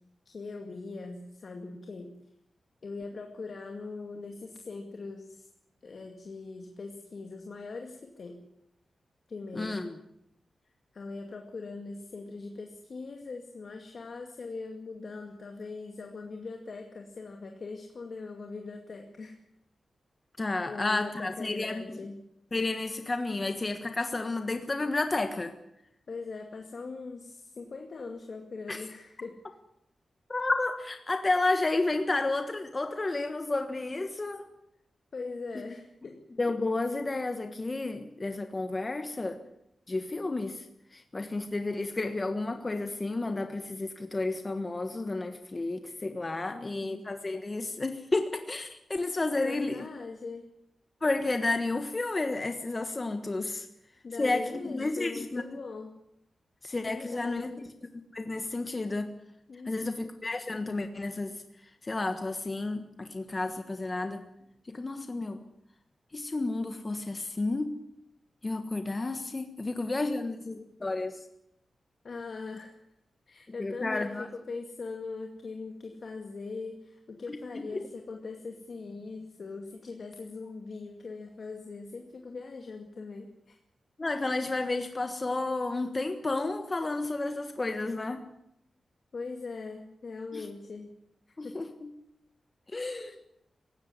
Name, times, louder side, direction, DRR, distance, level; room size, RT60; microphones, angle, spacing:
voice 1, 0.3-2.1 2.8-5.5 5.8-8.4 9.3-9.9 10.9-19.4 20.7-22.2 26.1-29.4 35.1-36.2 46.5-47.0 49.4-50.5 54.0-56.0 56.9-57.6 59.5-60.1 72.0-72.7 73.3-83.6 89.1-90.9 91.4-91.6, left 3 dB, 55° left, 3 dB, 2.3 m, -41 dB
voice 2, 9.5-9.9 20.4-21.8 22.5-25.5 28.7-28.8 30.3-34.5 35.5-35.6 36.4-39.4 39.9-40.7 40.9-49.9 51.0-53.7 54.2-55.4 56.6-57.5 58.1-59.1 59.7-61.4 61.8-64.2 64.7-65.4 66.1-67.8 68.4-71.2 73.6-74.3 77.3-77.4 77.7-77.9 84.0-88.2 90.3-90.5 91.4-91.9 92.7-93.2, left 2 dB, 25° left, 7 dB, 1.4 m, -31 dB
19.0 x 16.5 x 9.8 m, 0.79 s
wide cardioid pair, 130°, 0 cm